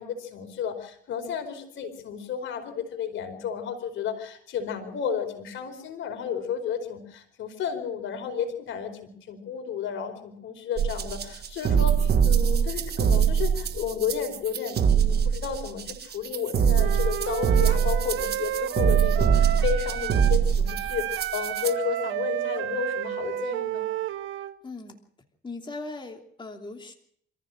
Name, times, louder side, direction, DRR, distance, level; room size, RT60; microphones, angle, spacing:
voice 1, 0.0-23.9, left 7 dB, 75° left, 6 dB, 4.7 m, -32 dB
sound 1, 10.8-21.7, right 7 dB, 55° right, 1.4 m, -23 dB
Wind instrument woodwind instrument, 16.7-20.4 20.7-24.6, right 13 dB, 80° right, 1.0 m, -31 dB
voice 2, 24.6-25.0 25.4-26.9, left 3 dB, 25° left, 2 dB, 3.0 m, -39 dB
26.5 x 15.0 x 6.5 m, 0.66 s
cardioid pair, 90°, 20 cm